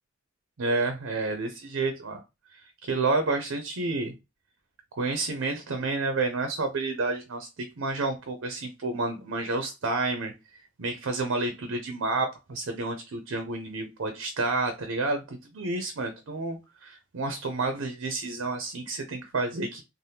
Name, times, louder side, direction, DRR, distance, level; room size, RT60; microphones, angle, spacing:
voice 1, 0.6-2.2 2.5-4.1 4.9-10.3 10.8-19.8, right 3 dB, 90° right, 0.5 m, -30 dB
3.3 x 2.1 x 2.7 m
head